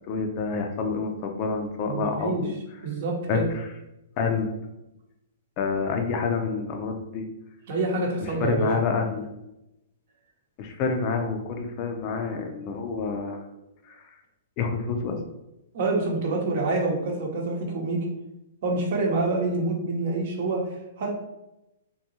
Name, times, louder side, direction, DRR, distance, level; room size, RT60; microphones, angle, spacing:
voice 1, 0.1-2.6 3.3-3.7 4.2-4.5 5.6-7.2 8.4-9.3 10.6-13.4 13.8-14.0 14.6-15.2, left 5 dB, 40° left, 4 dB, 0.4 m, -28 dB
voice 2, 1.9-2.4 2.8-3.5 7.7-8.7 15.7-18.1 18.6-21.2, right 3 dB, 55° right, 0 dB, 0.8 m, -27 dB
2.7 x 2.3 x 2.7 m, 0.91 s
hypercardioid pair, 120°, 0 cm